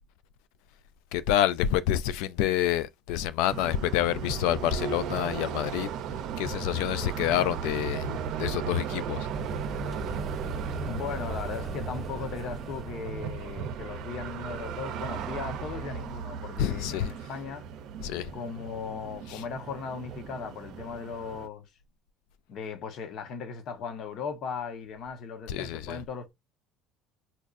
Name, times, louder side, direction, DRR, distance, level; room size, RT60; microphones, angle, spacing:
voice 1, 1.1-5.9 6.4-9.3 16.6-17.1 18.0-18.3 19.3-19.4 25.5-26.0, left 11 dB, 75° left, 0.3 m, -28 dB
sound 1, 3.5-21.5, right 8 dB, 60° right, 0.5 m, -37 dB
sound 2, 9.3-16.3, right 2 dB, 25° right, 0.8 m, -39 dB
voice 2, 10.8-17.6 18.3-21.7 22.5-26.3, left 5 dB, 55° left, 1.0 m, -37 dB
4.2 x 2.4 x 2.4 m
cardioid pair, 120°, 0 cm